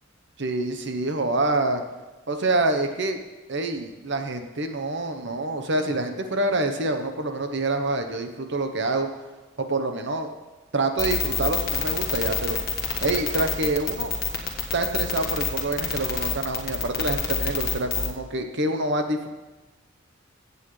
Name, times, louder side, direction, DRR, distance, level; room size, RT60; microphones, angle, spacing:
voice 1, 0.4-1.8 2.3-3.2 3.5-9.1 9.6-10.3 10.7-12.6 13.0-14.1 14.7-19.3, right 2 dB, 60° right, 6 dB, 1.0 m, -26 dB
sound 1, 11.0-18.1, left 7 dB, 50° left, 1.4 m, -26 dB
15.5 x 8.3 x 3.3 m, 1.2 s
head